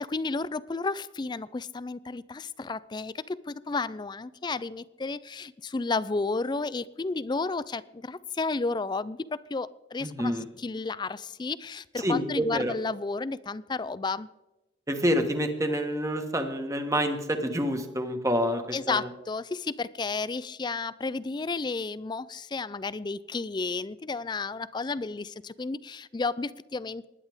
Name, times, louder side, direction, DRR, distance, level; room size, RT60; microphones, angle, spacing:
voice 1, 0.0-14.3 18.7-27.1, left 3 dB, 25° left, 18 dB, 0.4 m, -32 dB
voice 2, 10.0-10.4 12.0-12.7 14.9-18.6 18.9-19.1, equal, 15° right, 6 dB, 1.4 m, -27 dB
20.0 x 10.5 x 3.6 m, 0.99 s
head